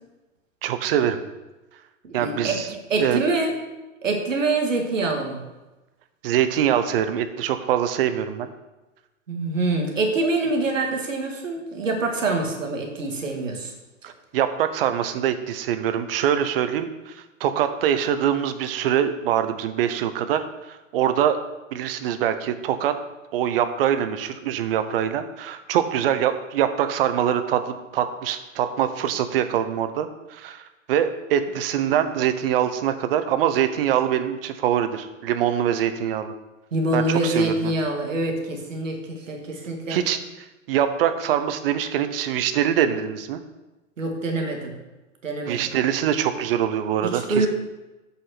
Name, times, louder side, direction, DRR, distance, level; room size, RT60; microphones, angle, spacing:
voice 1, 0.6-1.2 2.1-2.7 3.0-3.2 6.2-8.5 14.0-21.4 21.7-22.9 23.3-36.3 36.9-37.7 39.9-40.2 40.7-43.4 45.5-47.5, right 9 dB, 45° right, 10 dB, 1.0 m, -24 dB
voice 2, 2.0-3.6 4.0-5.4 9.3-13.7 36.7-40.1 44.0-44.7 45.2-45.7 47.0-47.5, right 2 dB, 70° right, 2 dB, 2.2 m, -25 dB
8.5 x 5.6 x 5.9 m, 1.1 s
figure-of-eight pair, 105°, 39 cm